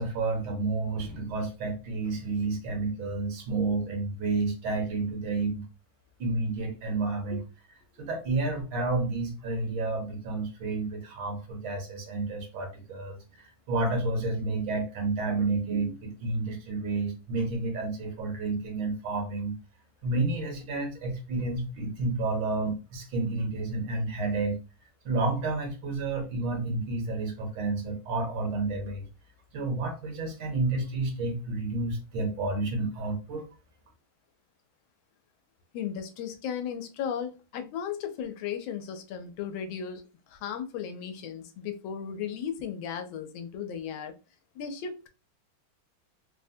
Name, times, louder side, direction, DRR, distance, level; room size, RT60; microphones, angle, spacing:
voice 1, 0.0-5.7 6.2-7.4 8.0-19.5 20.0-24.6 25.0-29.0 29.5-33.5, right 3 dB, 75° right, 3 dB, 1.7 m, -30 dB
voice 2, 35.7-44.1 44.5-45.1, left 8 dB, 85° left, 7 dB, 1.4 m, -36 dB
3.7 x 2.1 x 2.6 m, 0.30 s
omnidirectional pair, 2.1 m